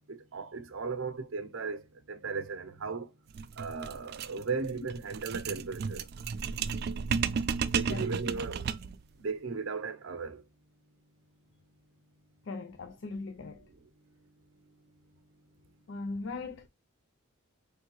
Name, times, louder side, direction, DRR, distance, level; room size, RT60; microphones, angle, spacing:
voice 1, 0.1-1.8 2.1-3.1 3.6-6.0 7.7-8.6 9.2-10.4, right 4 dB, 75° right, 0.7 m, -36 dB
sound 1, 3.3-9.0, right 6 dB, 50° right, 0.3 m, -33 dB
voice 2, 12.5-13.7 15.9-16.7, left 3 dB, 60° left, 0.4 m, -39 dB
4.5 x 3.3 x 3.1 m
head